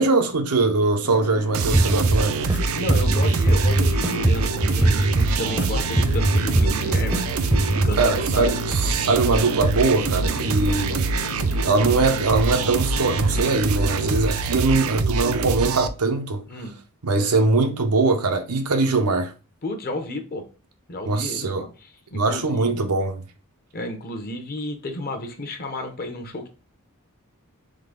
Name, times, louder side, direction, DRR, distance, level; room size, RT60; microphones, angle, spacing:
voice 1, 0.0-2.4 8.0-11.1 11.6-16.4 17.0-19.3 21.1-21.6 22.1-23.2, right 3 dB, 90° right, 0.8 m, -21 dB
sound 1, 1.0-14.3, left 4 dB, 80° left, 0.5 m, -36 dB
sound 2, 1.5-15.9, right 4 dB, 65° right, 0.4 m, -25 dB
sound 3, 1.7-2.6 2.9-5.7 6.0-7.2 7.5-7.9, right 1 dB, 5° right, 0.5 m, -21 dB
voice 2, 2.7-7.3 7.8-8.6 10.3-10.6 16.5-16.7 19.6-20.5 20.9-22.8 23.7-26.5, left 1 dB, 40° left, 0.8 m, -32 dB
3.8 x 3.3 x 3.6 m
head